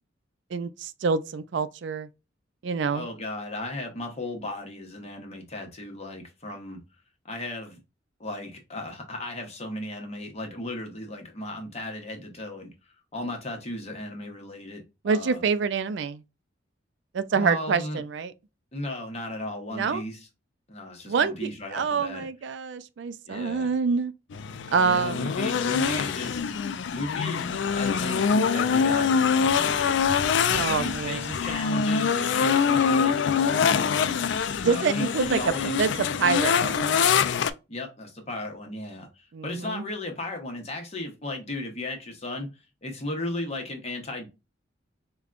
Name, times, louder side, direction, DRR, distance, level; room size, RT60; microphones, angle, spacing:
voice 1, 0.5-2.1 2.6-3.1 15.0-16.2 17.1-18.3 19.7-20.0 21.1-24.1 24.7-25.3 30.5-31.3 34.6-35.4 35.8-37.1 39.3-39.8, right 5 dB, 70° right, 0.4 m, -26 dB
voice 2, 2.9-6.8 7.2-7.8 8.2-15.4 17.3-18.0 18.7-20.3 20.7-22.3 23.3-23.7 24.8-26.4 26.9-30.1 30.8-33.9 34.7-35.9 37.7-42.5 42.8-44.3, left 1 dB, 35° left, 0.9 m, -35 dB
sound 1, 24.3-37.5, left 6 dB, 70° left, 0.3 m, -24 dB
5.0 x 2.2 x 2.4 m
head